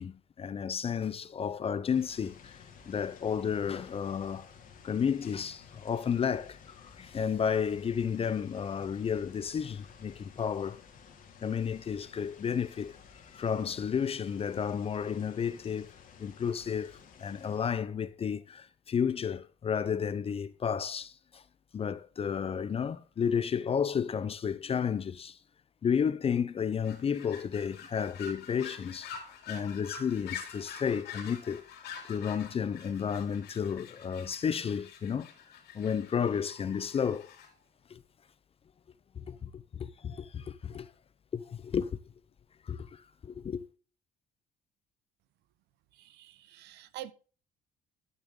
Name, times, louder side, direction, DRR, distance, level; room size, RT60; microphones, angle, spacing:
voice 1, 0.0-4.5 4.8-10.8 11.4-13.0 13.3-15.9 16.2-21.4 21.7-25.4 25.8-29.1 29.5-31.6 32.0-35.3 35.7-37.3 37.9-38.0 39.2-40.9 41.3-42.0 42.7-43.6, left 7 dB, 35° left, 0.7 m, -32 dB
sound 1, 1.9-17.7, left 6 dB, 55° left, 2.7 m, -54 dB
sound 2, 26.8-37.5, left 7 dB, 75° left, 3.8 m, -46 dB
voice 2, 45.9-47.1, right 13 dB, 80° right, 0.9 m, -46 dB
12.0 x 6.9 x 3.8 m
cardioid pair, 110°, 17 cm